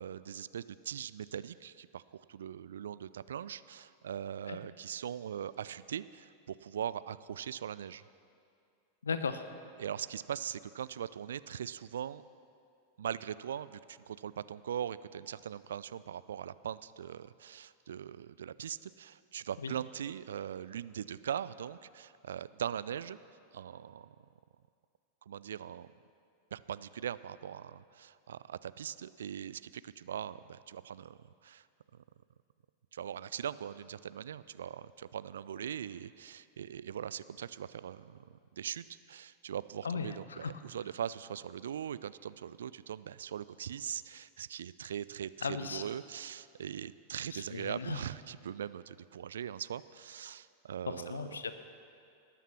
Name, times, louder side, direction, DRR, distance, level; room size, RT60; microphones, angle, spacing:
voice 1, 0.0-8.0 9.8-12.2 13.0-23.2 23.5-24.1 25.3-25.9 26.5-31.6 32.9-51.4, right 9 dB, 65° right, 16 dB, 0.3 m, -41 dB
voice 2, 9.0-9.4 19.6-19.7 39.8-40.5 45.4-45.8 47.3-48.0 50.9-51.5, left 5 dB, 70° left, 10 dB, 0.8 m, -36 dB
19.0 x 9.1 x 5.9 m, 2.4 s
figure-of-eight pair, 90°, 0 cm